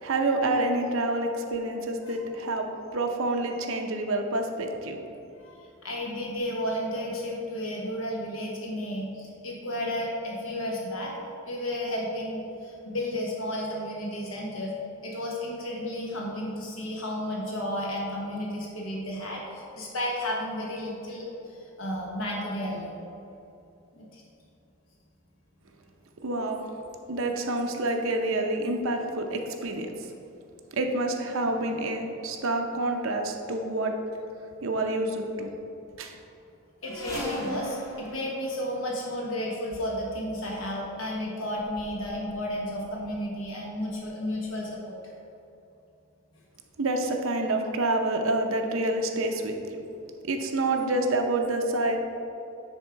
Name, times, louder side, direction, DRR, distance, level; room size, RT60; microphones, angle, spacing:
voice 1, 0.0-5.0 26.2-26.7 27.1-29.9 30.7-34.0 34.6-35.5 36.0-36.1 46.8-49.8 50.2-52.0, right 2 dB, 70° right, 4 dB, 0.7 m, -28 dB
voice 2, 5.4-11.1 11.4-14.7 15.0-22.9 23.9-24.2 36.8-45.0, left 1 dB, 70° left, -3 dB, 1.2 m, -32 dB
sound 1, 36.8-39.3 40.3-40.5 41.3-41.4 41.6-42.5 42.8-43.3 44.0-44.1 44.4-44.5, right 1 dB, 15° left, 1.1 m, -39 dB
9.7 x 3.6 x 4.6 m, 2.7 s
head